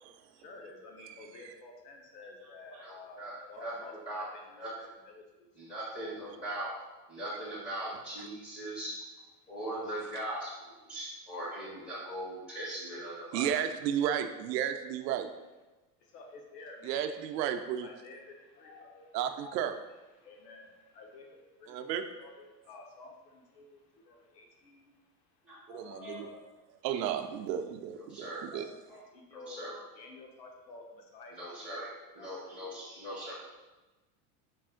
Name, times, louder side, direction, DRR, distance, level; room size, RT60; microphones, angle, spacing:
voice 1, 0.3-3.2 3.5-4.4 5.0-5.8 9.4-9.5 16.0-17.1 17.8-19.6 20.2-26.5 26.8-26.9 28.5-28.8 29.1-29.7 29.9-32.8, left 3 dB, 80° left, 1 dB, 1.1 m, -51 dB
voice 2, 2.7-3.3 3.6-3.7 4.1-4.3 4.6-4.7 5.6-6.7 7.1-9.0 9.5-13.5 25.4-25.6 26.0-26.2 27.9-28.4 28.9-29.0 29.3-29.8 31.3-31.9 32.2-33.3, right 1 dB, 10° left, -7 dB, 0.4 m, -40 dB
voice 3, 13.3-15.3 16.8-17.9 19.1-19.8 21.7-22.0 25.7-26.3 26.8-28.7, right 9 dB, 90° right, 7 dB, 0.6 m, -33 dB
5.3 x 2.4 x 3.7 m, 1.1 s
supercardioid pair, 170°, 48 cm